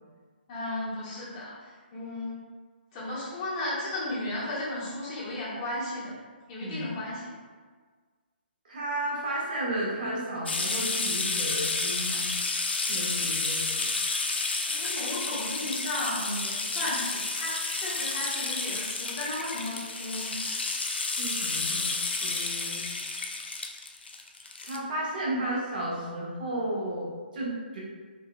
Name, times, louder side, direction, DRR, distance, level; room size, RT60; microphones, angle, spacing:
voice 1, 0.5-1.5 1.9-2.3 2.9-6.1 6.5-7.2 13.7-14.0 14.6-20.4, left 1 dB, 35° left, -8 dB, 1.5 m, -34 dB
voice 2, 8.6-12.3 12.9-13.9 21.2-21.9 22.2-22.9 24.6-27.1 27.3-27.8, right 1 dB, 55° right, -5 dB, 1.4 m, -33 dB
sound 1, 10.5-24.8, left 3 dB, 75° left, 0.4 m, -31 dB
4.6 x 2.9 x 2.3 m, 1.5 s
figure-of-eight pair, 140°, 6 cm